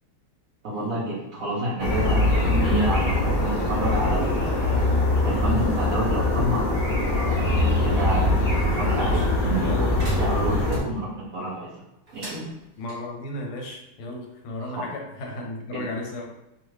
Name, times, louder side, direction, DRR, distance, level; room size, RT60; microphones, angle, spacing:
voice 1, 0.6-4.9 5.2-8.2 8.8-9.6 10.2-11.7 12.1-12.4 14.6-14.9 15.7-15.9, right 1 dB, 80° right, -7 dB, 0.7 m, -29 dB
sound 1, 1.8-10.8, left 2 dB, 55° left, 0.9 m, -22 dB
voice 2, 8.6-9.3 9.6-10.0 12.8-16.3, left 1 dB, 80° left, 1 dB, 1.5 m, -34 dB
sound 2, 10.0-10.8 12.1-13.0, right 1 dB, 35° right, 0.8 m, -41 dB
3.3 x 2.4 x 3.1 m, 0.88 s
omnidirectional pair, 2.4 m